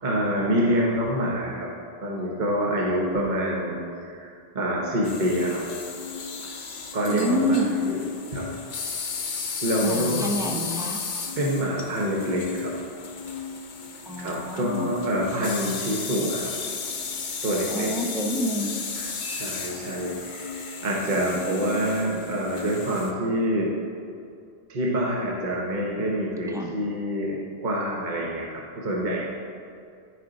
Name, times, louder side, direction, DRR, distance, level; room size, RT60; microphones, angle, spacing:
voice 1, 0.0-1.7 2.0-5.7 6.4-6.6 6.9-8.0 8.3-8.5 9.6-10.3 11.4-12.8 14.2-16.6 17.4-17.9 19.0-23.7 24.7-29.3, equal, 40° right, -3 dB, 1.0 m, -26 dB
sound 1, 5.0-23.1, left 5 dB, 45° left, 0.8 m, -34 dB
voice 2, 7.1-7.8 9.8-11.0 14.1-14.9 17.7-18.8 21.1-21.6 26.5-26.7, equal, 5° right, 0 dB, 0.6 m, -28 dB
14.0 x 4.9 x 3.9 m, 2.4 s
omnidirectional pair, 1.2 m